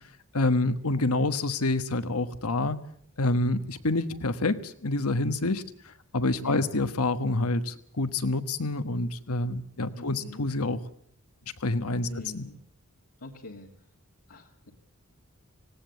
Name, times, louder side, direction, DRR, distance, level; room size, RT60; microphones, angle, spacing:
voice 1, 0.3-2.8 3.2-5.6 6.1-10.8 11.6-12.1 12.3-12.4, left 2 dB, 85° left, 11 dB, 1.3 m, -27 dB
voice 2, 10.0-10.5 12.0-12.6 13.2-13.7 14.3-14.7, left 2 dB, 70° left, -1 dB, 2.0 m, -44 dB
18.5 x 17.5 x 8.3 m, 0.62 s
head